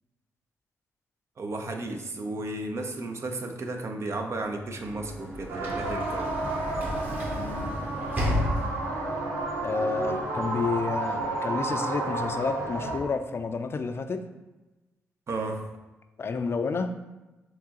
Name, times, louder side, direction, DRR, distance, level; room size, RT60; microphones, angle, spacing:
voice 1, 1.4-6.3 15.3-15.7, right 2 dB, 50° right, 4 dB, 0.6 m, -33 dB
Sliding door / Slam, 4.5-9.2, left 1 dB, 30° right, 1.2 m, -33 dB
sound 1, 5.5-13.0, right 2 dB, 90° right, 0.7 m, -31 dB
voice 2, 7.3-7.9 9.6-14.3 16.2-17.0, left 4 dB, 45° left, 8 dB, 0.4 m, -30 dB
4.5 x 3.0 x 2.8 m, 1.1 s
supercardioid pair, 50°, 6 cm